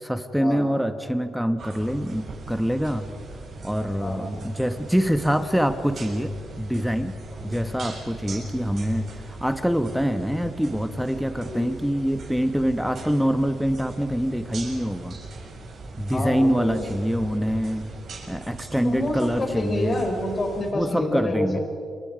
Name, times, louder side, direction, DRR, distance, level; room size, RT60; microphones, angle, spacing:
voice 1, 0.0-3.1 3.6-7.2 7.4-15.2 16.0-17.9 18.3-20.0 20.7-21.6, equal, ahead, 9 dB, 1.1 m, -25 dB
sound 1, 1.6-20.7, right 3 dB, 55° right, 7.3 m, -40 dB
voice 2, 16.1-16.9 18.8-21.6, left 2 dB, 35° left, 3 dB, 4.5 m, -28 dB
28.5 x 24.5 x 5.1 m, 2.4 s
cardioid pair, 90°, 0 cm